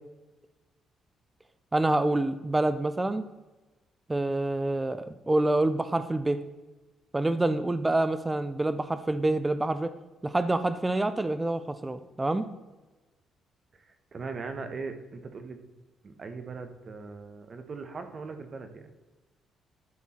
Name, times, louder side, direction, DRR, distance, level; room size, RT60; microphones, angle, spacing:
voice 1, 1.7-3.2 4.1-6.4 7.1-10.0 10.2-12.4, right 2 dB, 10° right, 11 dB, 0.4 m, -27 dB
voice 2, 13.7-15.6 16.0-18.9, right 4 dB, 30° right, 7 dB, 0.9 m, -40 dB
12.0 x 4.6 x 4.2 m, 1.2 s
cardioid pair, 160°, 0 cm